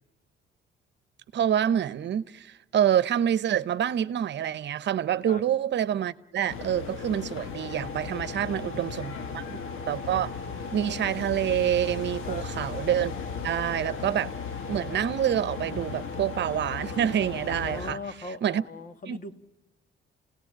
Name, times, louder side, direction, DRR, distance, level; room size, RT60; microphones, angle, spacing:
voice 1, 1.3-9.6 9.9-10.3 10.7-13.1 13.4-14.3 14.7-18.0 18.4-18.6 19.1-19.3, right 10 dB, 65° right, 1.0 m, -27 dB
sound 1, 6.5-17.9, left 6 dB, 90° left, 1.7 m, -37 dB
sound 2, 7.5-17.5, right 1 dB, 60° left, 4.9 m, -45 dB
voice 2, 8.2-9.7 12.2-12.5 17.6-19.3, left 3 dB, 40° left, 2.0 m, -41 dB
28.0 x 18.0 x 8.8 m
cardioid pair, 90°, 20 cm